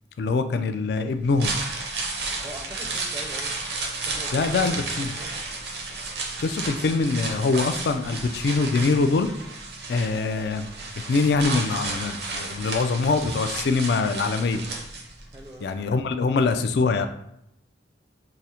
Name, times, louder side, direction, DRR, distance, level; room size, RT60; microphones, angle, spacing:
voice 1, 0.2-1.5 4.3-5.1 6.4-9.3 9.9-10.7 11.1-14.6 15.6-17.1, left 4 dB, 60° left, 9 dB, 0.3 m, -23 dB
sound 1, 1.2-15.4 15.7-15.8, right 3 dB, 60° right, 0.6 m, -32 dB
voice 2, 2.4-3.5 4.0-5.4 15.3-15.7, right 1 dB, 20° right, 1 dB, 0.4 m, -42 dB
4.7 x 2.0 x 2.8 m, 0.78 s
head